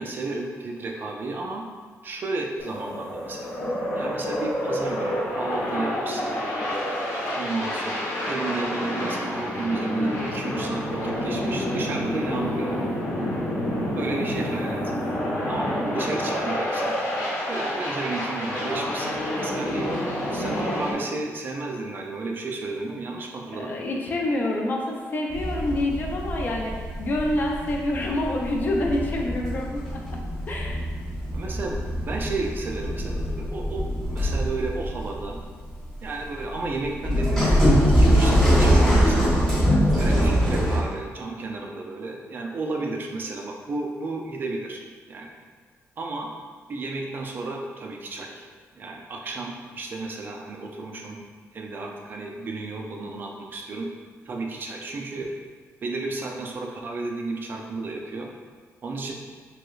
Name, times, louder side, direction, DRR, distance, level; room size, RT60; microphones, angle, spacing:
voice 1, 0.0-1.7 2.0-3.5 3.9-6.4 7.4-12.9 14.0-14.8 15.5-16.9 17.5-19.9 20.3-23.8 31.3-35.4 36.0-39.5 39.9-44.8 45.1-45.4 46.0-46.3 46.7-48.3 48.8-51.2 51.5-53.9 54.3-55.3 55.8-58.3 58.8-59.1, right 3 dB, 40° right, 1 dB, 0.3 m, -32 dB
sound 1, 2.6-20.9, equal, 65° left, 1.0 m, -28 dB
voice 2, 13.6-14.0 23.5-30.2 30.5-30.8, left 1 dB, 35° left, 0 dB, 0.4 m, -27 dB
sound 2, 25.3-40.8, equal, 5° left, 1.0 m, -23 dB
3.1 x 2.9 x 2.3 m, 1.5 s
cardioid pair, 160°, 5 cm